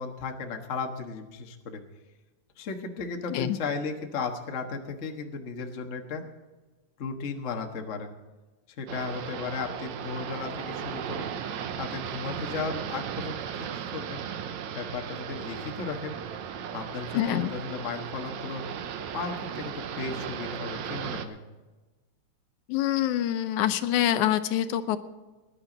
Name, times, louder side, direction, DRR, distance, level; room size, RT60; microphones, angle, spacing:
voice 1, 0.0-1.8 2.6-6.2 7.0-8.1 8.8-11.3 11.8-14.2 14.7-16.2 16.7-18.6 19.1-21.4, left 4 dB, 50° left, 3 dB, 0.9 m, -35 dB
sound 1, 8.9-21.3, right 8 dB, 75° right, 2.1 m, -36 dB
voice 2, 17.2-17.5 22.7-25.0, left 12 dB, 80° left, 11 dB, 2.1 m, -25 dB
19.5 x 11.0 x 4.0 m, 1.2 s
omnidirectional pair, 3.5 m